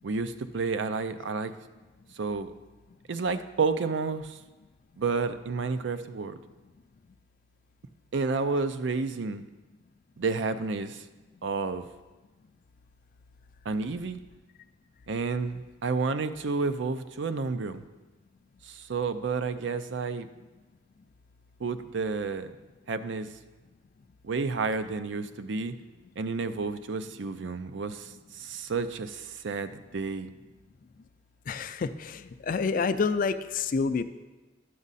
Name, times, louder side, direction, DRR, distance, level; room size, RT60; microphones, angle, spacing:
voice 1, 0.0-1.5 2.1-2.5 3.1-4.4 5.0-6.4 8.1-9.4 10.2-11.0 11.4-11.9 13.7-14.2 15.1-17.8 18.6-20.3 21.6-22.5 22.9-23.3 24.2-25.7 26.2-30.3, right 4 dB, 70° right, 11 dB, 0.5 m, -30 dB
voice 2, 31.5-34.0, left 5 dB, 45° left, 12 dB, 0.4 m, -28 dB
11.0 x 6.2 x 4.1 m, 1.2 s
head